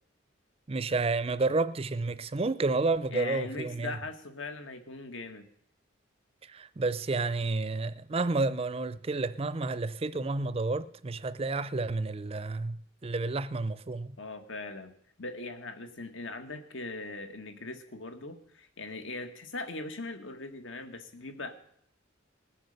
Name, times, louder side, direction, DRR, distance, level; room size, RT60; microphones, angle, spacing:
voice 1, 0.7-3.9 6.5-12.8 13.0-14.2, right 3 dB, 30° right, 0.5 m, -30 dB
voice 2, 3.1-5.4 14.2-14.9 15.2-21.5, left 3 dB, 80° left, 1.8 m, -40 dB
19.5 x 7.8 x 6.7 m
head